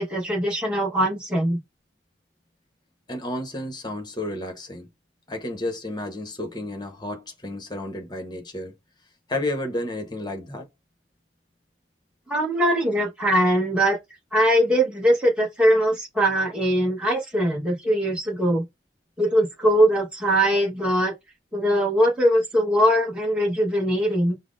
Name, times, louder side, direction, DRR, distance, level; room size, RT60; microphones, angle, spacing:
voice 1, 0.0-1.6 12.3-14.0 14.3-18.6 19.2-21.1 21.5-24.3, equal, 5° right, 1.1 m, -21 dB
voice 2, 3.1-4.9 5.3-8.8 9.3-10.7, left 1 dB, 25° left, 0.9 m, -31 dB
5.7 x 2.0 x 2.5 m
head